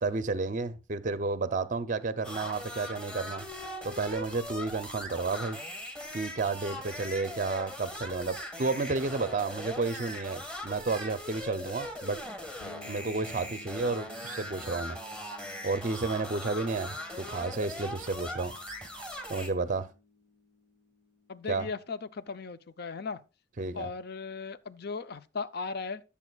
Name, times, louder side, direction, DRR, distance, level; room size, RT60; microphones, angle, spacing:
voice 1, 0.0-3.4 3.8-5.6 6.1-12.2 12.9-15.0 15.6-18.5 19.3-19.9 21.5-21.7 23.6-23.9, right 3 dB, 40° right, 0.5 m, -31 dB
sound 1, 2.2-19.5, left 1 dB, 5° left, 1.5 m, -40 dB
sound 2, 12.6-22.2, left 3 dB, 80° left, 1.0 m, -56 dB
voice 2, 21.3-23.2 23.7-26.0, left 4 dB, 50° left, 0.6 m, -37 dB
15.0 x 7.1 x 2.3 m
head